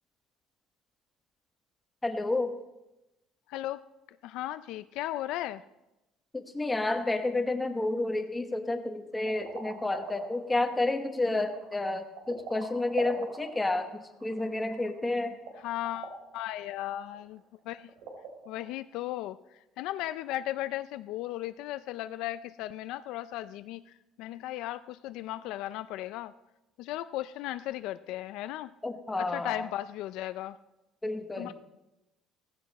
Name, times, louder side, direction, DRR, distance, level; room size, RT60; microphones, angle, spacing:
voice 1, 2.0-2.6 6.3-15.4 28.8-29.7 31.0-31.5, left 2 dB, 10° left, 5 dB, 1.1 m, -30 dB
voice 2, 3.5-3.8 4.2-5.6 15.6-17.4 17.7-17.9 18.5-19.4 19.8-23.8 24.2-26.3 26.8-28.7 29.2-30.6 31.4-31.5, left 14 dB, 65° left, 12 dB, 0.4 m, -36 dB
sound 1, 9.1-18.6, right 4 dB, 80° right, 3.3 m, -44 dB
16.5 x 15.0 x 4.1 m, 0.96 s
cardioid pair, 175°, 0 cm